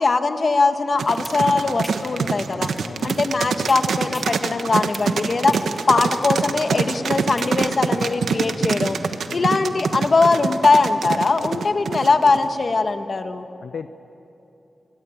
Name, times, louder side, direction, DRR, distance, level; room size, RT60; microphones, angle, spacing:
voice 1, 0.0-2.7 3.0-5.5 5.9-9.0 9.3-13.5, left 3 dB, 45° left, 7 dB, 1.5 m, -20 dB
sound 1, 0.9-8.1, equal, 5° right, 2.3 m, -37 dB
sound 2, 1.0-12.5, right 5 dB, 90° right, 1.3 m, -24 dB
voice 2, 2.8-3.2 5.5-5.7 9.3-9.6 13.6-13.9, left 6 dB, 75° left, 9 dB, 0.7 m, -36 dB
27.5 x 21.5 x 8.9 m, 2.9 s
wide cardioid pair, 110°, 0 cm